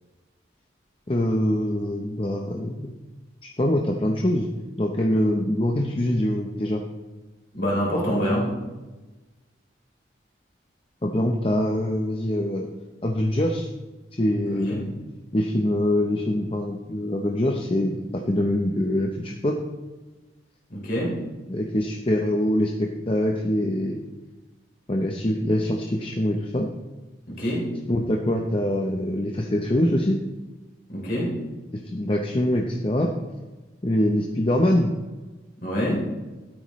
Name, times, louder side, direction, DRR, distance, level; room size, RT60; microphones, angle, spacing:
voice 1, 1.1-2.9 3.4-4.5 4.8-6.8 11.0-12.7 13.0-13.7 14.1-14.9 15.3-19.6 21.5-24.0 24.9-26.7 27.4-27.5 27.9-30.2 31.7-33.1 33.8-34.9, left 1 dB, 30° left, 2 dB, 0.7 m, -24 dB
voice 2, 7.5-8.6 14.5-14.8 20.7-21.2 27.3-27.8 30.9-31.3 35.6-36.1, equal, 50° left, -4 dB, 3.3 m, -26 dB
12.5 x 9.5 x 3.1 m, 1.2 s
head